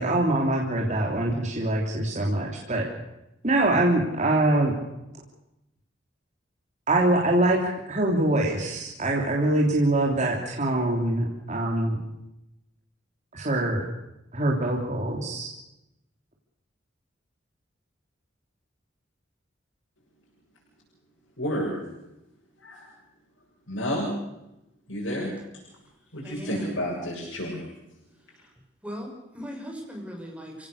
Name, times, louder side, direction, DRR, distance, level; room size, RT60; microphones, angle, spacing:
voice 1, 0.0-2.9 3.4-4.7 6.9-12.0 13.3-13.8 14.3-15.5, right 1 dB, 40° right, -1 dB, 3.3 m, -24 dB
voice 2, 21.4-21.8 22.6-22.9 23.7-24.1 24.9-25.3 26.1-27.6, equal, 80° left, -4 dB, 7.3 m, -30 dB
voice 3, 26.2-26.8 28.8-30.7, equal, 5° right, 1 dB, 6.3 m, -38 dB
28.5 x 17.5 x 6.7 m, 0.90 s
head